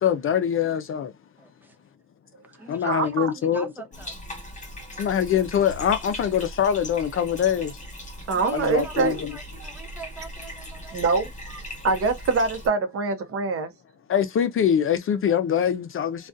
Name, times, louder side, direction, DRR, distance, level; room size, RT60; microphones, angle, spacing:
voice 1, 0.0-1.1 2.7-3.7 5.0-7.7 8.5-9.3 14.1-16.3, left 8 dB, 45° left, 0.5 m, -23 dB
voice 2, 1.4-1.8 2.6-4.2 8.3-11.3, right 3 dB, 5° right, 0.7 m, -43 dB
voice 3, 2.8-3.3 8.3-9.2 9.6-9.7 10.9-13.7, right 4 dB, 50° right, 0.8 m, -25 dB
Bathtub (filling or washing), 3.9-12.7, left 1 dB, 25° left, 1.1 m, -39 dB
2.4 x 2.3 x 2.4 m
cardioid pair, 90°, 30 cm